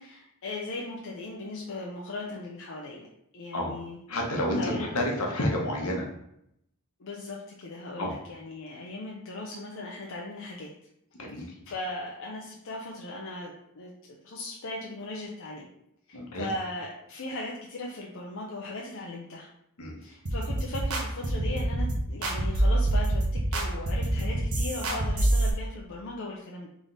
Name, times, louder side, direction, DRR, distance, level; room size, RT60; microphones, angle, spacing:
voice 1, 0.0-3.1 3.3-4.0 4.5-4.9 7.0-10.7 11.7-13.9 14.2-15.7 16.1-19.5 20.0-23.2 23.5-26.7, left 2 dB, 65° left, -2 dB, 0.6 m, -38 dB
voice 2, 4.1-6.1 8.0-8.1 11.2-11.5 16.1-16.5 19.8-20.0, left 1 dB, 85° left, -1 dB, 1.2 m, -30 dB
sound 1, 20.3-25.5, right 1 dB, 75° right, 1.0 m, -26 dB
3.7 x 3.4 x 4.0 m, 0.76 s
head